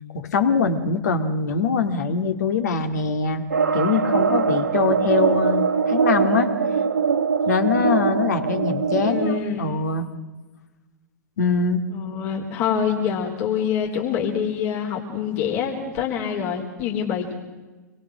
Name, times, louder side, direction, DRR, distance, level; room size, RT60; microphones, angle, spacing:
voice 1, 0.1-3.5 3.7-6.5 7.5-10.0 11.4-11.8, left 5 dB, 70° left, 6 dB, 2.4 m, -23 dB
sound 1, 3.5-9.4, right 6 dB, 85° right, 2.2 m, -22 dB
voice 2, 9.0-9.7 11.9-17.4, left 7 dB, 50° left, -1 dB, 3.9 m, -25 dB
26.5 x 22.5 x 6.3 m, 1.2 s
figure-of-eight pair, 100°, 10 cm